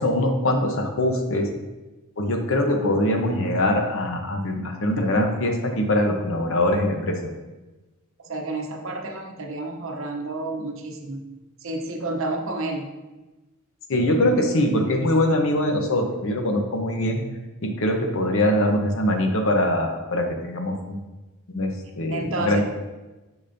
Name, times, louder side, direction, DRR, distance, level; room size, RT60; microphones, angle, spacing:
voice 1, 0.0-1.5 2.2-7.3 13.9-17.2 17.6-21.0 21.5-22.6, left 1 dB, 65° left, 4 dB, 0.9 m, -23 dB
voice 2, 8.2-11.2 11.6-12.9 22.1-22.6, right 2 dB, 65° right, 4 dB, 0.8 m, -30 dB
6.7 x 6.2 x 2.7 m, 1.1 s
head